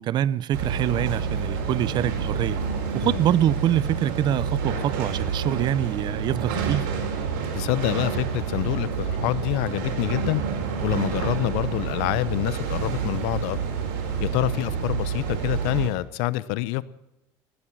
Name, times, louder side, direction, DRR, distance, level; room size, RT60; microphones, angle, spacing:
voice 1, 0.0-2.6 2.9-6.9, right 11 dB, 45° right, 0.5 m, -25 dB
sound 1, 0.5-15.9, right 6 dB, 90° right, 4.4 m, -28 dB
voice 2, 7.5-10.4 10.8-13.6 14.2-16.8, left 17 dB, 75° left, 0.8 m, -26 dB
15.5 x 12.0 x 7.5 m
cardioid pair, 125°, 11 cm